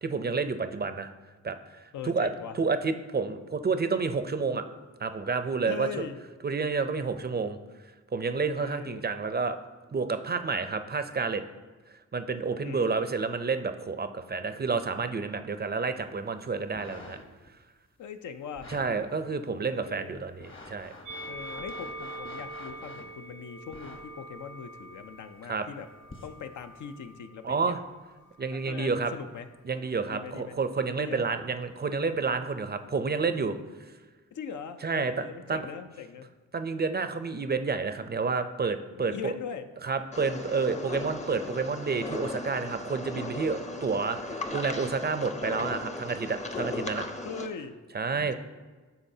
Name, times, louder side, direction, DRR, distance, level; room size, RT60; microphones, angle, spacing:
voice 1, 0.0-1.1 1.4-2.3 2.5-4.6 5.0-6.1 6.4-7.6 8.1-9.6 9.9-11.4 12.1-17.2 18.7-20.9 25.5-25.6 27.4-27.8 28.4-29.1 29.6-33.6 34.8-35.6 36.5-39.3 39.8-47.1 47.9-48.3, right 4 dB, 30° right, 9 dB, 0.5 m, -30 dB
voice 2, 1.9-2.6 5.6-6.2 8.6-9.0 12.6-13.0 18.0-18.7 19.7-20.2 21.3-25.9 26.2-27.6 28.5-29.5 30.1-30.6 30.9-31.3 34.3-36.3 38.9-39.7 47.2-47.8 48.1-48.3, left 6 dB, 70° left, 8 dB, 0.5 m, -40 dB
sound 1, 16.6-17.5 18.6-18.9 19.5-19.6 20.2-23.1 23.7-24.0 25.0-25.1 26.0-26.4 27.1-27.2, left 2 dB, 40° left, 1.1 m, -47 dB
Musical instrument, 21.0-27.5 28.3-29.3, right 1 dB, 80° right, 0.6 m, -44 dB
sound 2, 40.1-47.5, left 2 dB, 20° left, 0.6 m, -37 dB
11.5 x 3.9 x 2.7 m, 1.3 s
cardioid pair, 55°, 31 cm